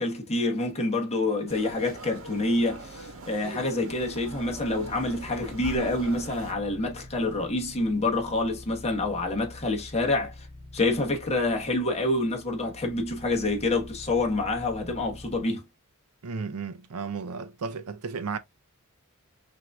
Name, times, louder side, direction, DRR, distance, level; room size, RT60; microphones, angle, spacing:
voice 1, 0.0-10.3 10.7-15.6, left 2 dB, 30° left, 1.2 m, -27 dB
sound 1, 1.5-6.5, right 2 dB, 65° right, 1.1 m, -42 dB
sound 2, 4.0-15.4, left 2 dB, 5° left, 2.2 m, -46 dB
voice 2, 16.2-18.4, right 5 dB, 80° right, 0.6 m, -34 dB
5.9 x 2.7 x 2.3 m
head